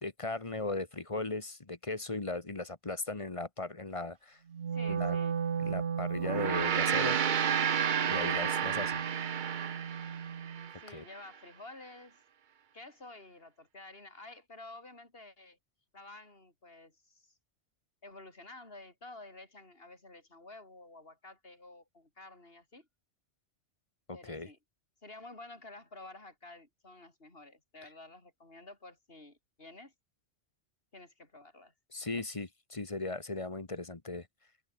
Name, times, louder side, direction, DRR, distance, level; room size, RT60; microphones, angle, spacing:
voice 1, 0.0-4.4 4.9-5.2 5.6-7.2 8.0-9.0 10.9-11.0 24.1-24.5 31.9-34.3, left 2 dB, 30° left, 1.5 m, -37 dB
Wind instrument woodwind instrument, 4.5-10.7, right 7 dB, 65° right, 1.4 m, -36 dB
voice 2, 4.7-5.4 10.8-12.2 12.7-15.6 15.9-17.4 18.0-22.9 24.1-24.6 25.0-29.9 30.9-31.7 32.0-32.2, left 2 dB, 55° left, 5.3 m, -51 dB
Gong, 6.2-10.8, right 8 dB, 50° right, 0.8 m, -31 dB
omnidirectional pair, 1.2 m